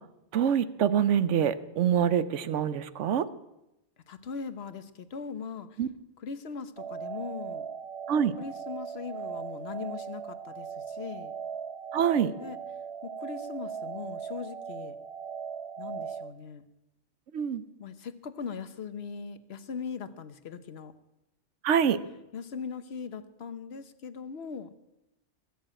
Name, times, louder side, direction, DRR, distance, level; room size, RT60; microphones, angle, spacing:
voice 1, 0.3-3.3 5.8-5.9 8.1-8.3 11.9-12.3 17.3-17.6 21.6-22.0, right 8 dB, 85° right, 14 dB, 1.1 m, -25 dB
voice 2, 4.1-5.8 6.2-7.7 8.1-11.4 12.4-12.6 13.0-15.0 15.8-16.7 17.8-20.9 22.3-24.7, left 6 dB, 60° left, 12 dB, 1.2 m, -40 dB
sound 1, 6.8-16.3, right 7 dB, 40° right, 0.4 m, -39 dB
21.5 x 7.2 x 8.9 m, 0.92 s
omnidirectional pair, 1.2 m